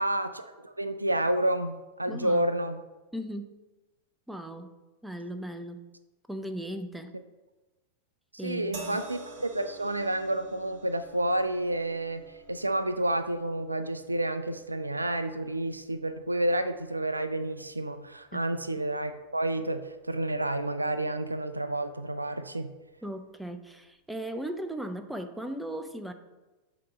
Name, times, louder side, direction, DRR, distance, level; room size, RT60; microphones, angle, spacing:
voice 1, 0.0-2.8 8.4-22.7, right 1 dB, 85° right, 11 dB, 0.3 m, -30 dB
voice 2, 2.1-2.4 3.1-3.5 4.3-4.7 5.0-5.8 6.3-7.1 8.4-9.0 18.3-18.4 23.0-26.1, right 1 dB, 5° right, 8 dB, 0.5 m, -37 dB
sound 1, 8.7-22.1 23.0-23.2, right 2 dB, 45° right, 1.3 m, -51 dB
8.3 x 3.0 x 4.9 m, 1.1 s
figure-of-eight pair, 90°, 0 cm